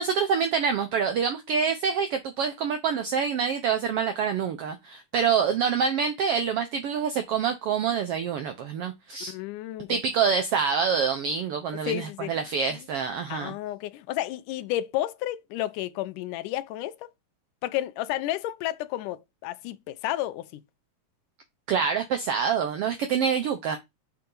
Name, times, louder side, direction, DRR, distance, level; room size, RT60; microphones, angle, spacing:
voice 1, 0.0-9.3 9.9-13.5 21.7-23.8, right 6 dB, 80° right, 1.3 m, -26 dB
voice 2, 9.3-10.0 11.9-12.4 13.3-17.1 17.6-20.6, left 14 dB, 85° left, 2.2 m, -31 dB
6.8 x 5.6 x 3.8 m
omnidirectional pair, 3.6 m